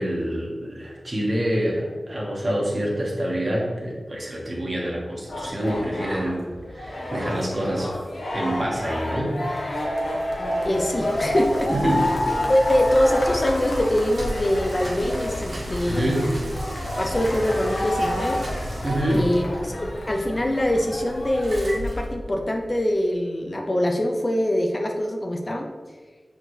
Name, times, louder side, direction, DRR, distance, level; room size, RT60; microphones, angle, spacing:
voice 1, 0.0-6.4 6.7-7.9 8.3-9.4 11.7-12.0 15.9-16.3 18.8-19.2, right 1 dB, 40° right, -3 dB, 1.5 m, -26 dB
sound 1, 5.3-21.7, left 1 dB, 85° left, 1.2 m, -30 dB
Bicycle, 9.6-22.8, equal, 80° right, 1.7 m, -35 dB
voice 2, 10.6-11.7 12.5-16.3 17.0-18.4 19.1-25.7, left 1 dB, 30° left, 2 dB, 0.6 m, -23 dB
6.5 x 4.5 x 3.2 m, 1.4 s
wide cardioid pair, 90°, 0 cm